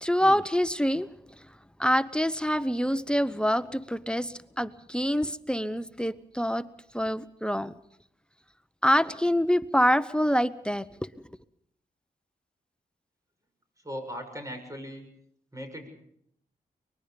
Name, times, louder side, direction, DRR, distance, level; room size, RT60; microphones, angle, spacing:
voice 1, 0.0-1.1 1.8-6.7 6.9-7.7 8.8-11.1, equal, 5° left, 14 dB, 0.9 m, -26 dB
voice 2, 13.8-15.1 15.5-15.9, equal, 20° right, 5 dB, 7.0 m, -38 dB
24.0 x 20.5 x 5.3 m, 0.71 s
cardioid pair, 45°, 17 cm